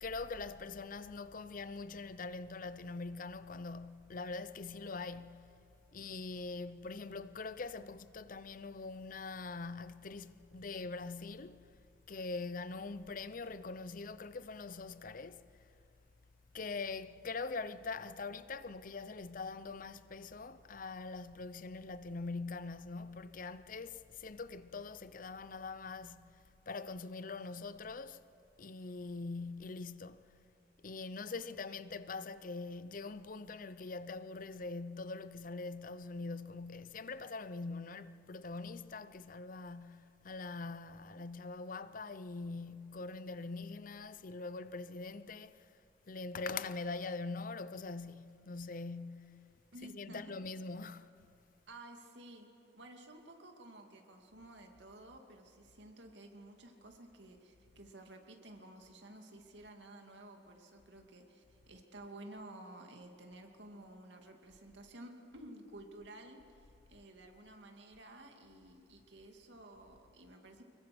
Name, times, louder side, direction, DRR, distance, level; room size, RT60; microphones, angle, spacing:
voice 1, 0.0-5.5 5.9-11.6 12.1-15.5 16.5-28.2 28.6-30.2 30.8-45.7 46.1-49.4 49.7-51.1, left 3 dB, 50° left, 0.7 m, -43 dB
voice 2, 49.7-50.3 51.7-70.6, right 1 dB, 75° right, 2.6 m, -53 dB
25.0 x 22.0 x 6.2 m
head